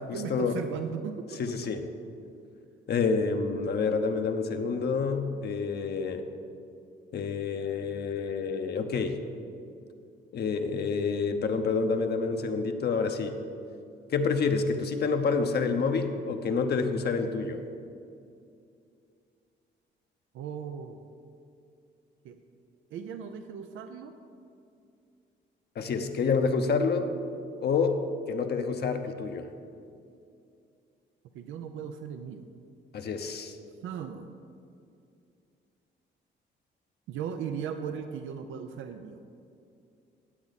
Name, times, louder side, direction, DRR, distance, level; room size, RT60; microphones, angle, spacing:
voice 1, 0.1-1.6 20.3-21.0 22.2-22.4 22.9-24.1 31.3-32.5 33.8-34.3 37.1-39.2, right 7 dB, 85° right, 7 dB, 0.6 m, -37 dB
voice 2, 1.4-1.8 2.9-6.3 7.1-9.2 10.3-13.4 14.1-17.6 25.8-27.1 27.6-28.0 28.3-29.5 32.9-33.6, left 5 dB, 55° left, 6 dB, 0.9 m, -28 dB
15.5 x 7.7 x 4.1 m, 2.5 s
cardioid pair, 90°, 20 cm